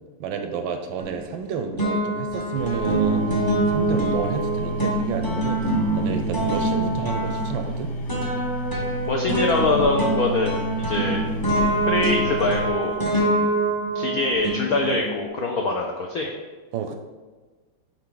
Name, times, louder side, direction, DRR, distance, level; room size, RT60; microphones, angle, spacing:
voice 1, 0.2-3.3 3.7-5.6 5.9-7.9 13.3-13.5 16.7-17.0, right 6 dB, 75° right, 6 dB, 1.2 m, -30 dB
sound 1, 1.0-1.5 1.8-15.2, right 1 dB, 20° left, 0.6 m, -25 dB
sound 2, 2.6-12.7, right 1 dB, 60° left, 1.4 m, -31 dB
voice 2, 9.1-10.6 10.9-11.2 11.9-13.0 13.9-16.3, left 2 dB, 80° left, 1 dB, 0.8 m, -23 dB
8.9 x 3.6 x 3.8 m, 1.3 s
omnidirectional pair, 2.4 m